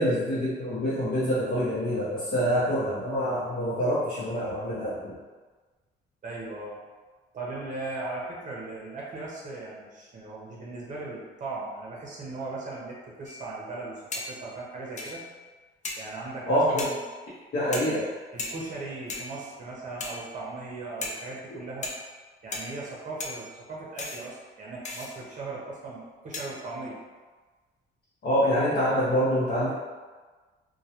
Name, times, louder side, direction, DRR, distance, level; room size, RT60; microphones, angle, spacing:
voice 1, 0.0-5.2 16.5-16.8 17.5-18.1 28.2-29.7, equal, 55° left, -10 dB, 0.8 m, -26 dB
voice 2, 6.2-6.8 7.3-15.2 16.0-17.0 17.7-17.9 18.3-21.9 22.4-27.0, right 3 dB, 40° right, -4 dB, 0.7 m, -38 dB
sound 1, 13.3-13.6 14.1-14.5 15.0-15.4 15.8-16.2 16.8-17.1 17.7-18.1 18.4-18.8 19.1-19.6 20.0-20.5 21.0-21.4 21.8-22.2 22.5-22.9 23.2-23.6 24.0-24.3 24.8-25.1 26.3-26.7, left 2 dB, 35° left, 0.4 m, -37 dB
2.2 x 2.1 x 2.8 m, 1.3 s
cardioid pair, 90°, 20 cm